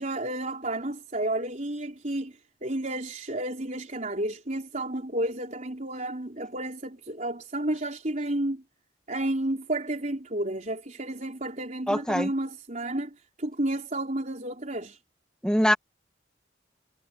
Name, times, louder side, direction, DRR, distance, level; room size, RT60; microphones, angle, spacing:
voice 1, 0.0-2.3 2.6-8.6 9.1-15.0, right 1 dB, 40° right, 4.4 m, -31 dB
voice 2, 11.9-12.3 15.4-15.7, equal, 5° left, 1.7 m, -23 dB
head